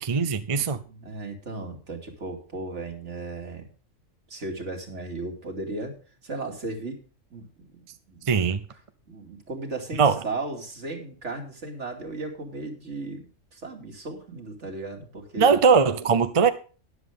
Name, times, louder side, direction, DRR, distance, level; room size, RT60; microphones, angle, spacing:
voice 1, 0.0-0.8 8.3-8.6 10.0-10.2 15.4-16.5, right 5 dB, 35° right, 0.6 m, -20 dB
voice 2, 0.8-3.7 4.3-6.0 6.2-7.0 7.3-8.3 9.1-15.6, right 2 dB, 65° right, 2.9 m, -36 dB
13.0 x 10.5 x 3.6 m
omnidirectional pair, 1.3 m